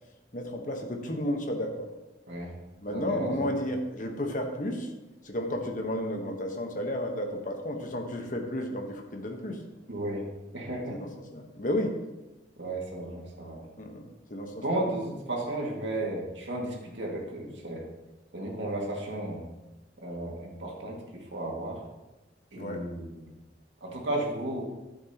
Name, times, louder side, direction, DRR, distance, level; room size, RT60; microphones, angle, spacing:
voice 1, 0.3-1.9 2.8-4.9 5.2-9.6 10.9-12.0 13.8-14.0 14.3-14.8 22.5-22.8, left 1 dB, 45° left, 3 dB, 1.2 m, -32 dB
voice 2, 2.9-3.5 9.9-11.0 12.6-13.7 14.6-17.8 18.3-19.5 20.0-21.8 22.5-23.3 23.8-24.6, right 1 dB, 85° right, -2 dB, 2.2 m, -34 dB
12.0 x 7.8 x 3.0 m, 1.1 s
head